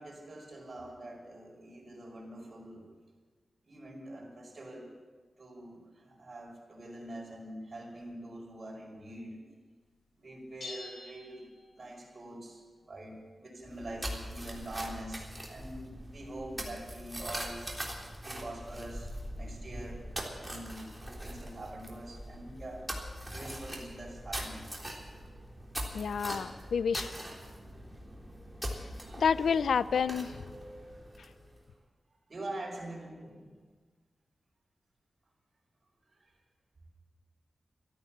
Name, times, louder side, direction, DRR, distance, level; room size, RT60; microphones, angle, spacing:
voice 1, 0.0-2.8 3.6-4.9 5.4-9.4 10.2-11.5 11.8-17.6 18.2-20.0 20.3-22.8 23.3-24.6 32.3-33.5 36.2-36.3, right 1 dB, 50° right, -1 dB, 5.7 m, -44 dB
sound 1, 10.6-12.2, left 2 dB, 65° left, 2.5 m, -47 dB
sound 2, 13.6-31.6, equal, 10° right, 3.5 m, -42 dB
voice 2, 25.9-27.2 29.2-30.4 31.2-31.3, left 6 dB, 90° left, 17 dB, 0.4 m, -29 dB
13.5 x 13.5 x 7.3 m, 1.4 s
cardioid pair, 60°, 0 cm